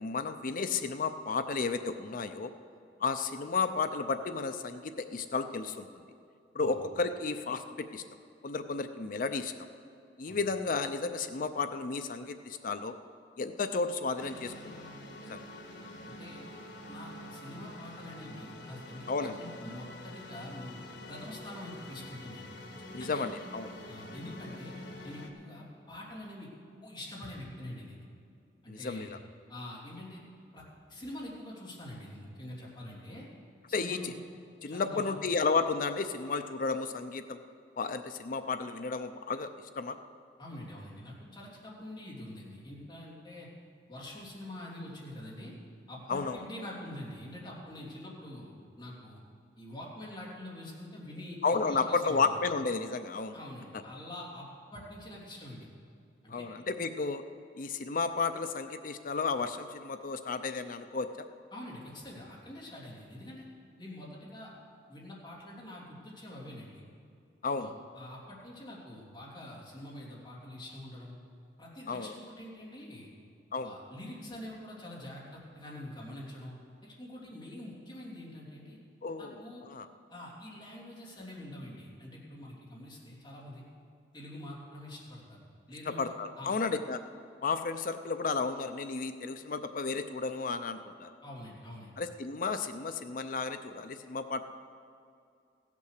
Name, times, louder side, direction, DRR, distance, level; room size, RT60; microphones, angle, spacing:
voice 1, 0.0-2.5 3.0-6.0 6.5-8.0 8.4-9.5 10.2-12.9 13.4-14.9 15.3-15.4 19.1-19.4 22.9-23.7 28.7-29.2 33.7-34.1 34.6-37.4 37.8-39.5 39.8-40.0 46.1-46.4 51.4-53.4 56.3-57.2 57.6-61.3 67.4-67.7 71.9-72.1 73.5-73.7 79.0-79.9 85.9-87.0 87.4-91.1 92.0-94.4, left 4 dB, 50° left, 9 dB, 0.5 m, -33 dB
sound 1, 14.2-25.3, left 1 dB, 85° left, 1.5 m, -46 dB
voice 2, 16.0-16.4 16.9-19.1 19.4-20.7 21.1-22.5 22.9-23.3 23.9-24.7 25.0-26.5 26.8-28.0 28.6-29.1 29.5-30.2 30.5-30.6 30.9-33.3 33.7-34.1 34.7-35.2 40.4-43.5 43.9-45.5 45.9-49.2 49.6-52.3 53.3-55.7 56.2-56.4 61.5-63.4 63.8-64.5 64.9-66.8 67.5-71.1 71.6-73.1 73.6-76.5 76.8-78.8 79.2-79.6 80.1-83.6 84.1-86.0 86.4-86.5 91.2-91.9, left 1 dB, 25° left, -5 dB, 3.2 m, -45 dB
16.0 x 8.4 x 6.6 m, 2.5 s
head